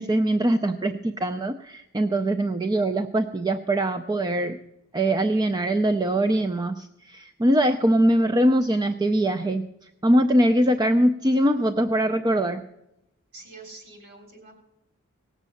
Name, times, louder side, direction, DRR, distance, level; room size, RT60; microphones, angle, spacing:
voice 1, 0.0-4.6 4.9-12.6, right 1 dB, 20° right, 8 dB, 0.4 m, -22 dB
voice 2, 13.3-14.5, right 2 dB, 50° right, 2 dB, 3.7 m, -45 dB
18.0 x 7.3 x 7.0 m, 0.85 s
head